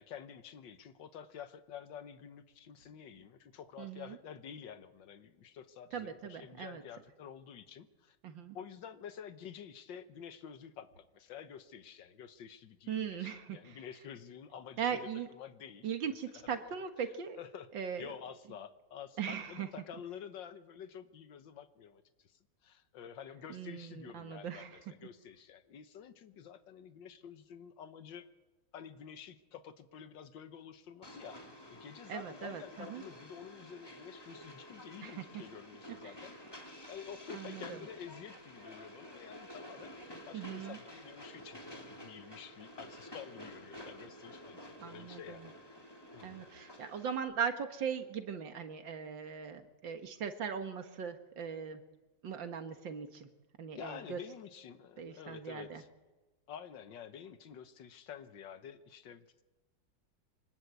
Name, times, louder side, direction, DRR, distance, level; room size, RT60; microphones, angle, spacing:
voice 1, 0.0-8.2 8.5-15.9 16.5-16.7 17.3-28.3 28.7-31.4 31.7-36.4 36.9-45.8 46.1-46.5 53.7-55.9 56.5-59.4, left 8 dB, 75° left, 10 dB, 1.8 m, -49 dB
voice 2, 3.8-4.2 5.9-6.8 8.2-8.6 12.9-13.8 14.8-15.3 15.8-17.4 17.7-18.1 19.2-19.7 23.5-24.8 32.1-33.0 35.0-35.4 36.0-36.1 37.3-37.8 40.3-40.8 44.8-45.5 46.2-51.8 52.2-53.3 53.6-54.2 55.0-55.8, right 7 dB, 75° right, 7 dB, 2.3 m, -39 dB
Train, 31.0-47.2, left 1 dB, 10° left, 2.5 m, -51 dB
24.5 x 19.5 x 8.2 m, 1.2 s
omnidirectional pair, 2.0 m